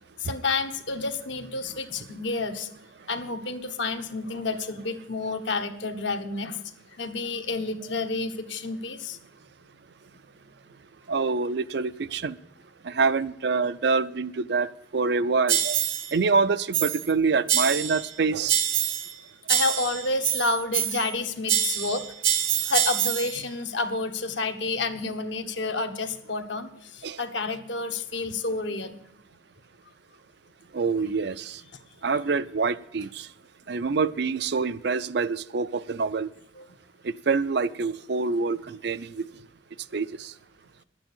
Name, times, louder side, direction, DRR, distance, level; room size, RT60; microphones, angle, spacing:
voice 1, 0.2-2.7 3.1-6.6 7.0-9.2 19.5-29.0 36.6-36.7, left 3 dB, 65° left, 1.2 m, -30 dB
voice 2, 11.1-12.4 12.8-14.7 14.9-15.8 16.1-18.6 27.0-27.2 30.7-31.6 32.0-33.3 33.7-36.3 37.3-39.2 39.9-40.3, right 4 dB, 55° right, 0.5 m, -26 dB
sound 1, 15.5-16.1 16.7-17.1 17.5-18.1 18.5-19.2 19.5-21.1 21.5-23.4, right 10 dB, 80° right, 1.0 m, -26 dB
11.0 x 8.8 x 7.1 m
head